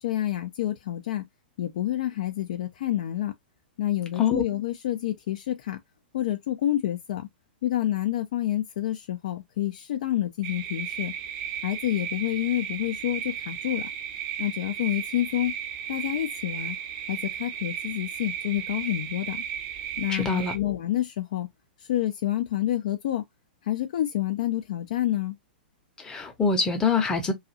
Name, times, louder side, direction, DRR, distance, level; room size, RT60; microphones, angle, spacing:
voice 1, 0.0-1.3 1.6-3.3 3.8-5.8 6.1-7.3 7.6-11.1 11.6-13.9 14.4-15.5 15.9-16.8 17.1-19.4 20.0-21.5 21.8-23.2 23.6-25.4, left 13 dB, 50° left, 0.4 m, -28 dB
sound 1, 10.4-20.6, right 9 dB, 40° right, 0.6 m, -35 dB
voice 2, 20.1-20.5 26.0-27.3, left 5 dB, 15° left, 0.7 m, -24 dB
2.6 x 2.4 x 2.6 m
figure-of-eight pair, 105°, 5 cm